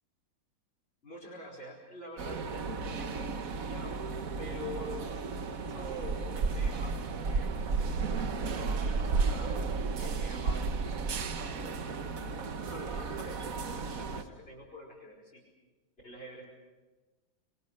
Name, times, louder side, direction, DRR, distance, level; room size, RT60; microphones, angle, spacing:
voice 1, 1.0-4.0 4.4-9.7 10.0-12.2 12.7-15.4 16.0-16.4, left 1 dB, 30° left, -5 dB, 5.3 m, -47 dB
sound 1, 2.2-14.2, right 4 dB, 50° right, 1.5 m, -33 dB
28.0 x 22.5 x 6.5 m, 1.2 s
omnidirectional pair, 2.1 m